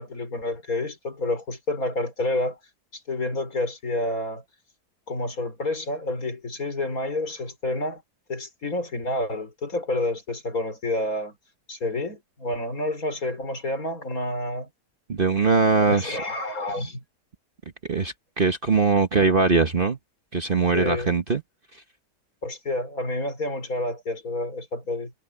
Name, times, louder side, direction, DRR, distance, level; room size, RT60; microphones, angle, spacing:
voice 1, 0.0-2.6 2.9-4.4 5.1-8.0 8.3-11.4 11.7-14.7 15.8-17.0 20.7-21.1 22.4-25.1, left 2 dB, 60° left, 4.9 m, -29 dB
voice 2, 15.1-16.2 17.9-20.0 20.3-21.4, right 4 dB, 35° right, 1.3 m, -21 dB
omnidirectional pair, 1.7 m